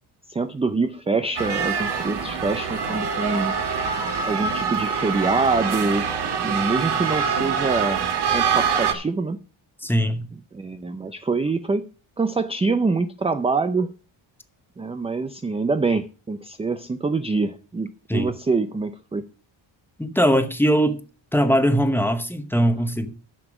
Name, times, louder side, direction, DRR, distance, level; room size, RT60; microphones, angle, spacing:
voice 1, 0.3-3.5 4.2-6.1 6.4-8.0 8.3-9.4 10.5-11.9 12.2-13.9 14.8-19.2, right 3 dB, 15° right, 0.4 m, -25 dB
sound 1, 1.4-8.9, right 6 dB, 55° right, 1.7 m, -24 dB
voice 2, 9.8-10.3 18.1-18.3 20.0-21.0 21.3-23.1, equal, 5° left, 0.9 m, -20 dB
9.9 x 6.9 x 5.9 m
wide cardioid pair, 155°, 47 cm